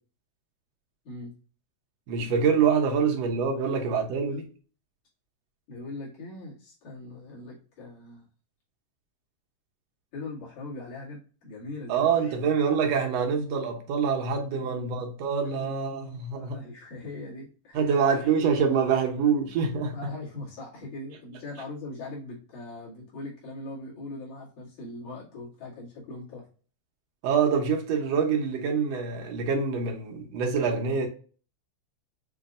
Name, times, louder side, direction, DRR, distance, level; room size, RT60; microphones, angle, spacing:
voice 1, 2.1-4.5 11.9-16.6 17.7-20.0 27.2-31.1, right 6 dB, 65° right, 1.8 m, -25 dB
voice 2, 5.7-8.3 10.1-12.4 14.5-15.0 15.4-16.1 16.3-17.9 18.2-18.3 19.9-26.5, left 2 dB, 70° left, 3.5 m, -41 dB
6.9 x 2.5 x 2.4 m
omnidirectional pair, 3.5 m